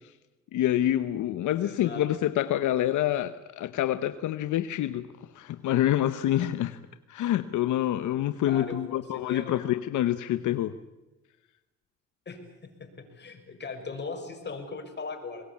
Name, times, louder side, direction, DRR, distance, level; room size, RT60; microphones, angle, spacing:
voice 1, 0.5-5.1 5.3-6.8 7.1-10.8, left 12 dB, 80° left, 11 dB, 1.0 m, -27 dB
voice 2, 1.6-2.0 8.5-9.6 12.3-15.5, left 4 dB, 35° left, 4 dB, 6.3 m, -39 dB
23.5 x 21.0 x 8.6 m, 1.1 s
cardioid pair, 90°, 30 cm